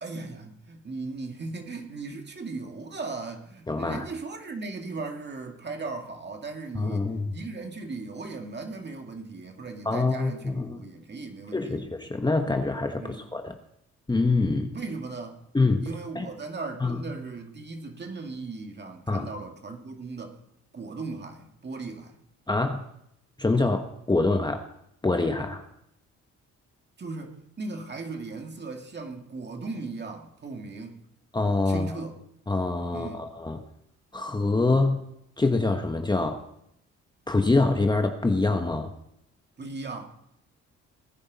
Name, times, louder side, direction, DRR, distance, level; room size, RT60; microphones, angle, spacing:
voice 1, 0.0-11.9 13.0-13.2 14.7-15.4 15.8-20.4 20.7-22.2 27.0-31.0 31.7-32.2 32.9-33.3 39.6-40.1, right 3 dB, 35° right, 4 dB, 2.1 m, -37 dB
voice 2, 3.7-4.1 6.7-7.3 9.8-10.8 11.5-13.5 14.1-14.7 15.5-15.9 16.1-16.3 16.8-17.0 19.1-19.3 22.5-22.8 23.4-24.6 25.0-25.6 31.3-31.9 32.5-33.6 34.1-35.0 35.4-36.4 37.3-38.9, left 3 dB, 15° left, 5 dB, 1.1 m, -25 dB
19.5 x 10.0 x 4.1 m, 0.76 s
cardioid pair, 90°, 30 cm